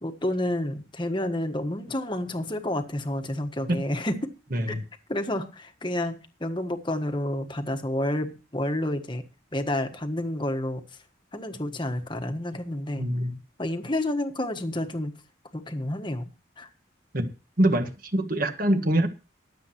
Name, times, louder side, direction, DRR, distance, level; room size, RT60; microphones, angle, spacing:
voice 1, 0.0-4.3 4.7-4.8 5.1-9.2 9.5-10.8 11.3-13.0 13.6-15.1 15.5-16.3 16.6-16.7, left 1 dB, 25° left, 1.4 m, -29 dB
voice 2, 13.0-13.3 17.1-17.3 17.6-19.1, right 1 dB, 45° right, 1.6 m, -24 dB
23.0 x 7.7 x 3.0 m
head